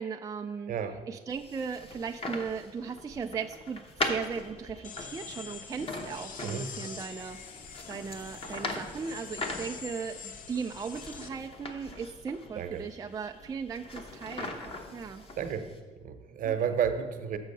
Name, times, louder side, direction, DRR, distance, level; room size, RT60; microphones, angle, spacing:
voice 1, 0.0-0.7 1.1-15.2 16.4-16.5, right 6 dB, 20° right, 4 dB, 0.3 m, -37 dB
voice 2, 0.7-1.0 6.4-6.7 12.6-12.8 15.4-15.7 16.0-17.4, right 8 dB, 55° right, 8 dB, 0.9 m, -31 dB
sound 1, 1.3-15.8, left 2 dB, 35° left, 1.1 m, -41 dB
sound 2, 4.8-11.3, left 6 dB, 55° left, 0.7 m, -45 dB
6.3 x 6.2 x 6.5 m, 1.4 s
cardioid pair, 110°, 17 cm